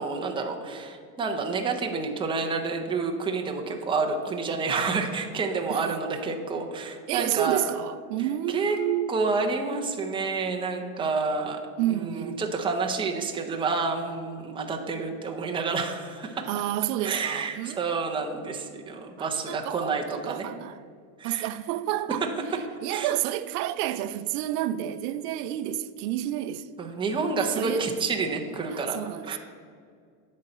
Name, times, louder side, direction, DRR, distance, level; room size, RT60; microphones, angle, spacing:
voice 1, 0.0-7.6 8.5-8.8 9.1-11.6 11.9-16.5 17.0-20.5 21.2-21.5 22.9-23.1 26.8-29.0 29.2-29.4, right 4 dB, 10° right, 0.7 m, -29 dB
voice 2, 5.7-6.0 7.1-9.1 11.8-12.5 16.5-17.8 19.2-20.7 21.2-22.2 22.8-26.7 27.4-27.9 28.7-29.4, right 13 dB, 80° right, 0.6 m, -30 dB
10.5 x 4.3 x 7.9 m
supercardioid pair, 145°, 47 cm